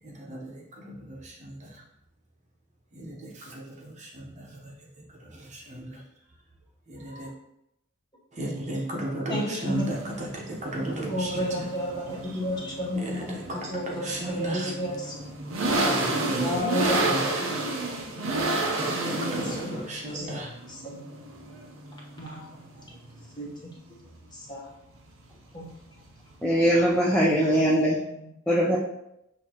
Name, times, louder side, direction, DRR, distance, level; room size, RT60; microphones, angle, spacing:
voice 1, 0.0-1.8 2.9-6.0 6.9-7.3 8.3-11.7 12.3-12.4 13.0-14.7 15.7-17.3 18.8-20.6, right 1 dB, 35° right, -2 dB, 0.9 m, -35 dB
voice 2, 9.3-10.1 11.1-15.1 16.4-17.6 18.1-20.4 20.7-21.2 22.2-23.5 24.3-24.7 25.5-26.0 26.8-28.6, left 1 dB, 20° left, -4 dB, 1.0 m, -34 dB
sound 1, 9.7-27.7, right 2 dB, 85° right, 0.8 m, -32 dB
voice 3, 26.4-28.0 28.5-28.8, equal, 5° left, -6 dB, 0.5 m, -21 dB
6.4 x 2.8 x 2.9 m, 0.84 s
head